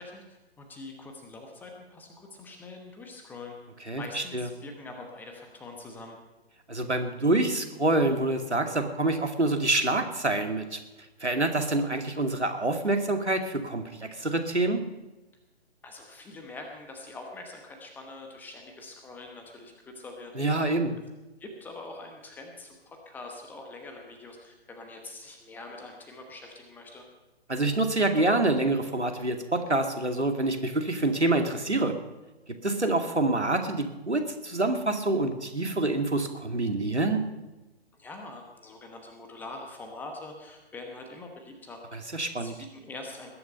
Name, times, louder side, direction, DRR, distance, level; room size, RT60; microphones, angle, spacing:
voice 1, 0.0-3.6 4.0-6.2 15.8-20.3 21.4-27.0 38.0-41.8 42.4-43.3, left 2 dB, 5° left, 3 dB, 1.1 m, -44 dB
voice 2, 3.9-4.5 6.7-10.8 11.2-14.8 20.3-21.0 27.5-31.9 32.6-37.2 41.9-42.5, right 2 dB, 90° right, 5 dB, 2.4 m, -26 dB
20.0 x 10.5 x 5.5 m, 1.1 s
figure-of-eight pair, 135°, 33 cm